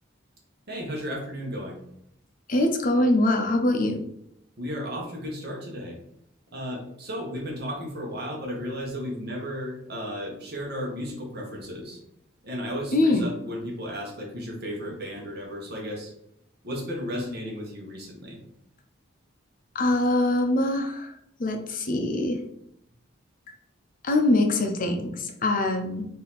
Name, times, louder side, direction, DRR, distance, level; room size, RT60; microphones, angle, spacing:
voice 1, 0.7-1.8 4.6-6.0 6.5-12.0 12.4-16.1 16.6-18.4, equal, 55° right, 0 dB, 1.2 m, -34 dB
voice 2, 2.5-4.0 12.9-13.2 19.7-22.4 24.0-26.1, left 1 dB, 45° left, 5 dB, 0.6 m, -23 dB
4.1 x 2.8 x 4.1 m, 0.74 s
head